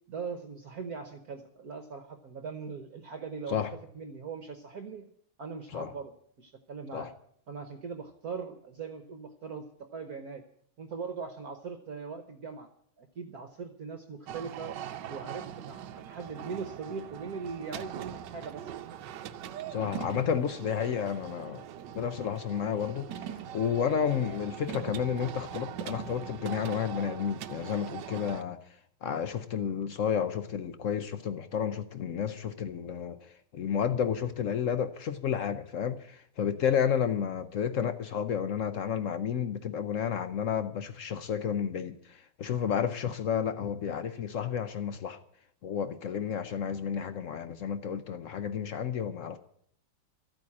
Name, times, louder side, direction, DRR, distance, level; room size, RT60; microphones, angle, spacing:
voice 1, 0.1-3.6 3.9-5.1 5.4-6.1 6.4-7.1 7.5-10.4 10.8-12.7 13.0-14.8 15.1-18.7 36.7-36.8, right 5 dB, 55° right, 1.3 m, -40 dB
sound 1, 14.3-28.4, right 10 dB, 70° right, 1.2 m, -41 dB
voice 2, 19.7-21.7 21.9-28.6 29.0-45.2 45.6-49.4, left 8 dB, 80° left, 0.7 m, -31 dB
13.5 x 9.0 x 8.6 m
omnidirectional pair, 2.3 m